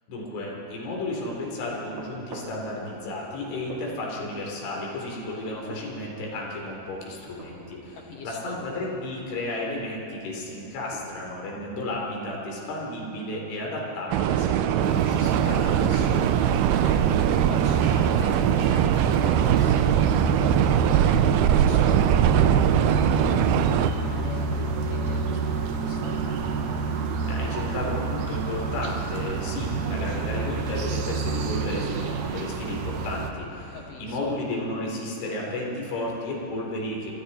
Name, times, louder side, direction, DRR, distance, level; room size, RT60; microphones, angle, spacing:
voice 1, 0.1-8.0 8.2-16.3 27.3-37.1, left 2 dB, 85° left, -2 dB, 6.2 m, -33 dB
sound 1, 0.9-12.1, right 1 dB, 45° right, 4.8 m, -48 dB
voice 2, 8.1-8.6 16.7-26.7 33.7-34.4, left 3 dB, 60° left, 0 dB, 1.7 m, -42 dB
sound 2, 14.1-23.9, right 10 dB, 85° right, 2.3 m, -21 dB
sound 3, 14.8-33.3, right 4 dB, 65° right, 2.1 m, -29 dB
28.0 x 25.0 x 4.4 m, 2.9 s
omnidirectional pair, 5.3 m